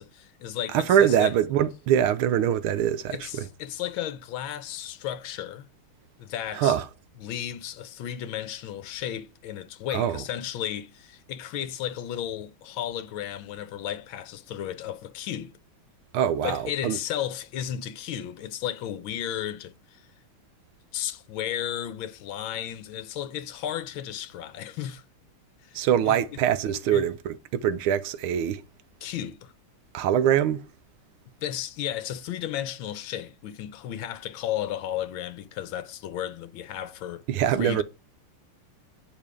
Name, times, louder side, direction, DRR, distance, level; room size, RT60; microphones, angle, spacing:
voice 1, 0.0-1.3 3.1-5.7 6.2-6.8 7.2-15.5 16.4-20.1 20.9-25.0 25.6-27.1 29.0-29.5 31.4-37.2 37.5-37.8, left 11 dB, 75° left, 1.4 m, -34 dB
voice 2, 0.7-3.4 6.5-6.8 9.9-10.2 16.1-17.0 25.7-28.6 29.9-30.6 37.3-37.8, right 10 dB, 80° right, 1.5 m, -23 dB
8.9 x 5.3 x 4.8 m
omnidirectional pair, 2.4 m